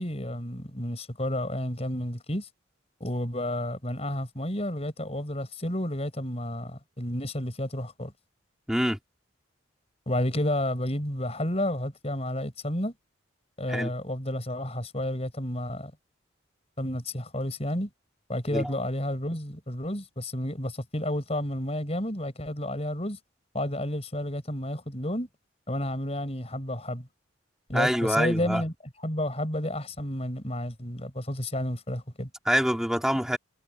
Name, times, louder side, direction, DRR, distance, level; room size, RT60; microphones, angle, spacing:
voice 1, 0.0-2.5 3.0-8.1 10.1-12.9 13.6-15.9 16.8-17.9 18.3-23.2 23.5-25.3 25.7-27.1 27.7-28.7 29.0-32.3, left 1 dB, 30° left, 6.3 m, -31 dB
voice 2, 8.7-9.0 13.7-13.9 18.5-18.7 27.7-28.6 32.5-33.4, equal, 5° right, 3.2 m, -25 dB
head